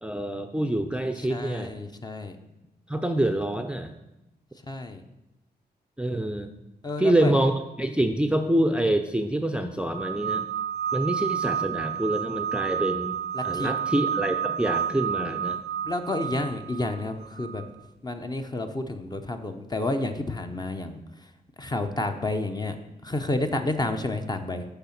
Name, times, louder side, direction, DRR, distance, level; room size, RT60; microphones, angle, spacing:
voice 1, 0.0-1.7 2.9-3.9 6.0-6.5 7.0-10.5 10.9-15.6, right 1 dB, 5° right, 7 dB, 0.6 m, -26 dB
voice 2, 1.3-2.4 4.7-5.0 6.8-7.3 13.3-13.7 15.8-17.6 18.0-21.0 21.6-22.7 23.0-24.7, left 2 dB, 25° left, 6 dB, 0.8 m, -30 dB
sound 1, 9.9-17.7, right 8 dB, 80° right, 0.7 m, -30 dB
6.7 x 5.7 x 5.9 m, 0.93 s
cardioid pair, 70°, 17 cm